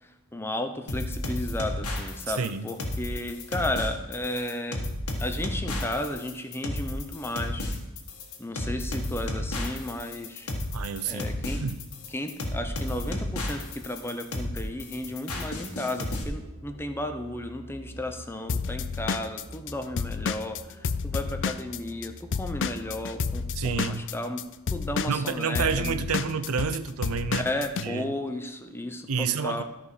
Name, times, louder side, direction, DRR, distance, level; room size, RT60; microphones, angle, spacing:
voice 1, 0.0-4.8 5.2-7.7 8.4-10.5 11.1-11.6 12.1-24.4 24.7-26.0 27.4-29.6, left 1 dB, 10° left, 6 dB, 0.6 m, -34 dB
sound 1, 0.9-16.2, left 1 dB, 85° left, 1.7 m, -32 dB
voice 2, 2.3-2.7 10.7-11.8 23.5-24.1 25.0-27.5 27.8-28.1 29.1-29.6, right 5 dB, 80° right, 12 dB, 0.6 m, -29 dB
sound 2, 15.1-23.9, right 1 dB, 35° right, 1.2 m, -46 dB
Drum kit / Drum, 18.5-22.1 22.3-27.9, left 5 dB, 55° left, 0.4 m, -30 dB
13.0 x 5.2 x 4.9 m, 1.0 s
head